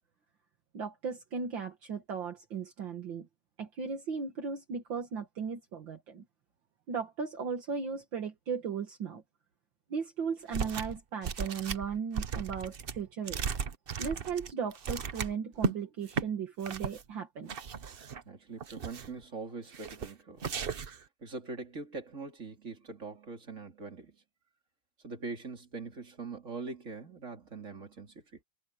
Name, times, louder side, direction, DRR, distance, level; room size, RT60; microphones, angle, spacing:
voice 1, 0.7-3.3 3.6-6.2 6.9-9.2 9.9-13.5 14.0-17.5, right 6 dB, 60° right, 2.3 m, -36 dB
sound 1, 10.5-11.0 11.2-15.7 16.1-16.3 16.6-17.0 17.5-18.2 18.6-19.2 19.7-20.1 20.4-21.0, right 6 dB, 85° right, 0.5 m, -36 dB
voice 2, 18.2-20.4 21.2-24.2 25.0-28.4, right 4 dB, 35° right, 3.4 m, -42 dB
omnidirectional pair, 2.3 m